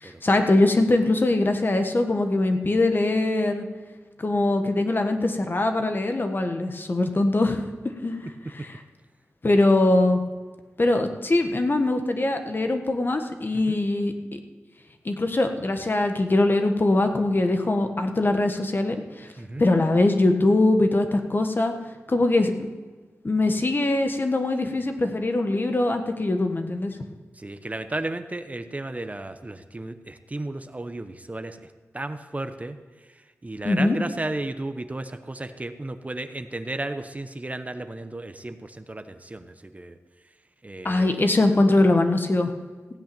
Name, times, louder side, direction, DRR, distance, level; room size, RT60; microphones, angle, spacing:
voice 1, 0.0-3.7 4.2-8.2 8.5-8.8 9.4-10.2 10.8-14.4 15.0-19.3 19.6-21.7 22.1-22.7 23.2-26.9 33.6-34.0 40.8-42.5, left 2 dB, 40° left, 5 dB, 1.4 m, -22 dB
voice 2, 27.4-31.7 31.9-32.8 33.4-40.0 40.6-41.2, right 2 dB, 30° right, 9 dB, 0.9 m, -34 dB
16.0 x 5.6 x 8.9 m, 1.4 s
cardioid pair, 50°, 5 cm